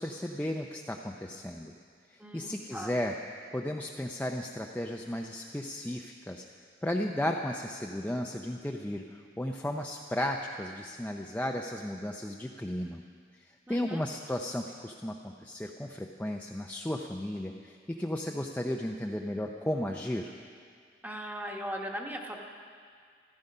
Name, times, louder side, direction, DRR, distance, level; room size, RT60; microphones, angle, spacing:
voice 1, 0.0-1.7 2.1-3.1 3.5-6.4 6.8-13.0 13.7-20.3, left 1 dB, 10° left, 1 dB, 0.5 m, -34 dB
voice 2, 2.2-3.0 13.7-14.0 21.0-22.4, equal, 10° right, 1 dB, 1.3 m, -39 dB
14.5 x 12.5 x 5.5 m, 2.1 s
head